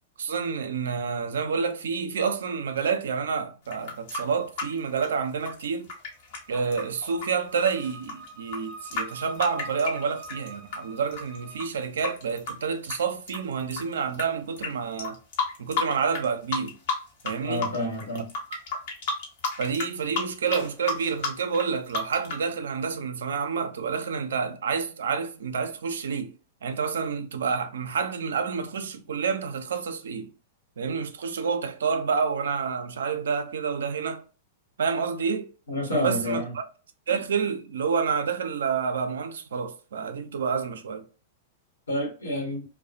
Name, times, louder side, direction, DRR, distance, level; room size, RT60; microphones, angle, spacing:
voice 1, 0.2-5.9 6.5-15.2 15.6-16.8 17.2-17.7 18.1-18.2 18.7-18.8 19.6-26.3 26.6-30.3 30.8-34.2 34.8-35.5 35.9-36.6 37.1-41.0, right 6 dB, 75° right, 0.4 m, -28 dB
sound 1, 3.6-10.8 11.1-14.2 14.6-14.7 15.0-16.2 16.5-17.3 17.6-22.5, left 4 dB, 60° left, 0.9 m, -32 dB
sound 2, 6.1-11.6, right 3 dB, 5° right, 0.5 m, -45 dB
voice 2, 17.4-18.2 35.7-36.5 41.9-42.6, left 1 dB, 85° left, 1.0 m, -29 dB
2.3 x 2.1 x 2.6 m
hypercardioid pair, 105°, 0 cm